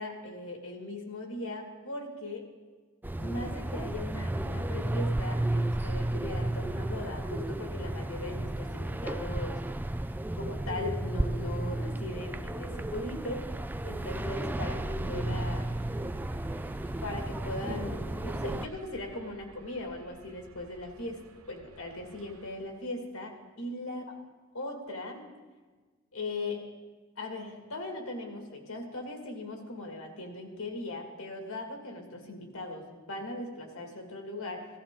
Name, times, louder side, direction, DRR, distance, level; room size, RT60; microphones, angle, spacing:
voice 1, 0.0-2.5 3.2-9.6 10.4-13.4 13.8-15.8 17.0-24.1 24.5-25.2 26.1-26.6 27.2-34.7, left 2 dB, 75° left, 2 dB, 2.3 m, -39 dB
sound 1, 3.0-18.7, right 1 dB, 10° right, 0.3 m, -33 dB
sound 2, 14.6-22.7, right 2 dB, 70° right, 0.8 m, -45 dB
16.5 x 13.5 x 3.8 m, 1.4 s
head